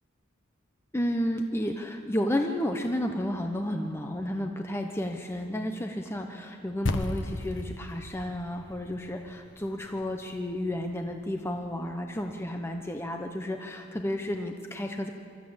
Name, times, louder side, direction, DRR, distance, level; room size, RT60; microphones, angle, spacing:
voice 1, 0.9-15.1, left 1 dB, 15° left, 4 dB, 0.9 m, -32 dB
sound 1, 6.9-11.4, left 1 dB, 65° left, 1.1 m, -36 dB
24.5 x 14.0 x 8.7 m, 2.5 s
head